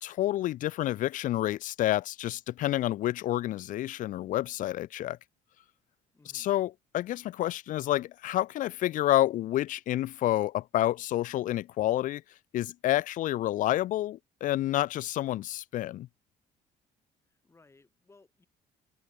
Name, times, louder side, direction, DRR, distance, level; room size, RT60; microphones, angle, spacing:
voice 1, 0.0-5.2 6.3-12.2 12.5-16.1, left 14 dB, 65° left, 0.8 m, -29 dB
voice 2, 6.1-6.6 17.3-18.5, left 3 dB, 20° left, 7.7 m, -61 dB
cardioid pair, 110°, 14 cm